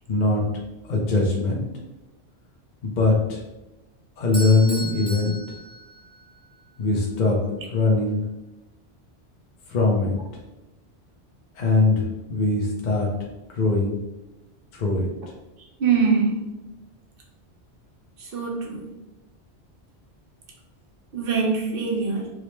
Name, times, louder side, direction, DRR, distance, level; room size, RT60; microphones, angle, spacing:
voice 1, 0.1-0.4 0.9-1.6 2.8-3.4 4.2-5.4 6.8-8.2 9.7-10.2 11.5-13.1 13.5-14.0 14.7-15.1, left 3 dB, 50° left, -2 dB, 0.7 m, -21 dB
Bell / Doorbell, 4.3-6.4, left 1 dB, 5° left, 0.5 m, -36 dB
voice 2, 15.6-16.3 18.2-18.9 21.1-22.3, right 5 dB, 55° right, 0 dB, 1.0 m, -23 dB
4.9 x 2.1 x 3.0 m, 1.0 s
omnidirectional pair, 1.2 m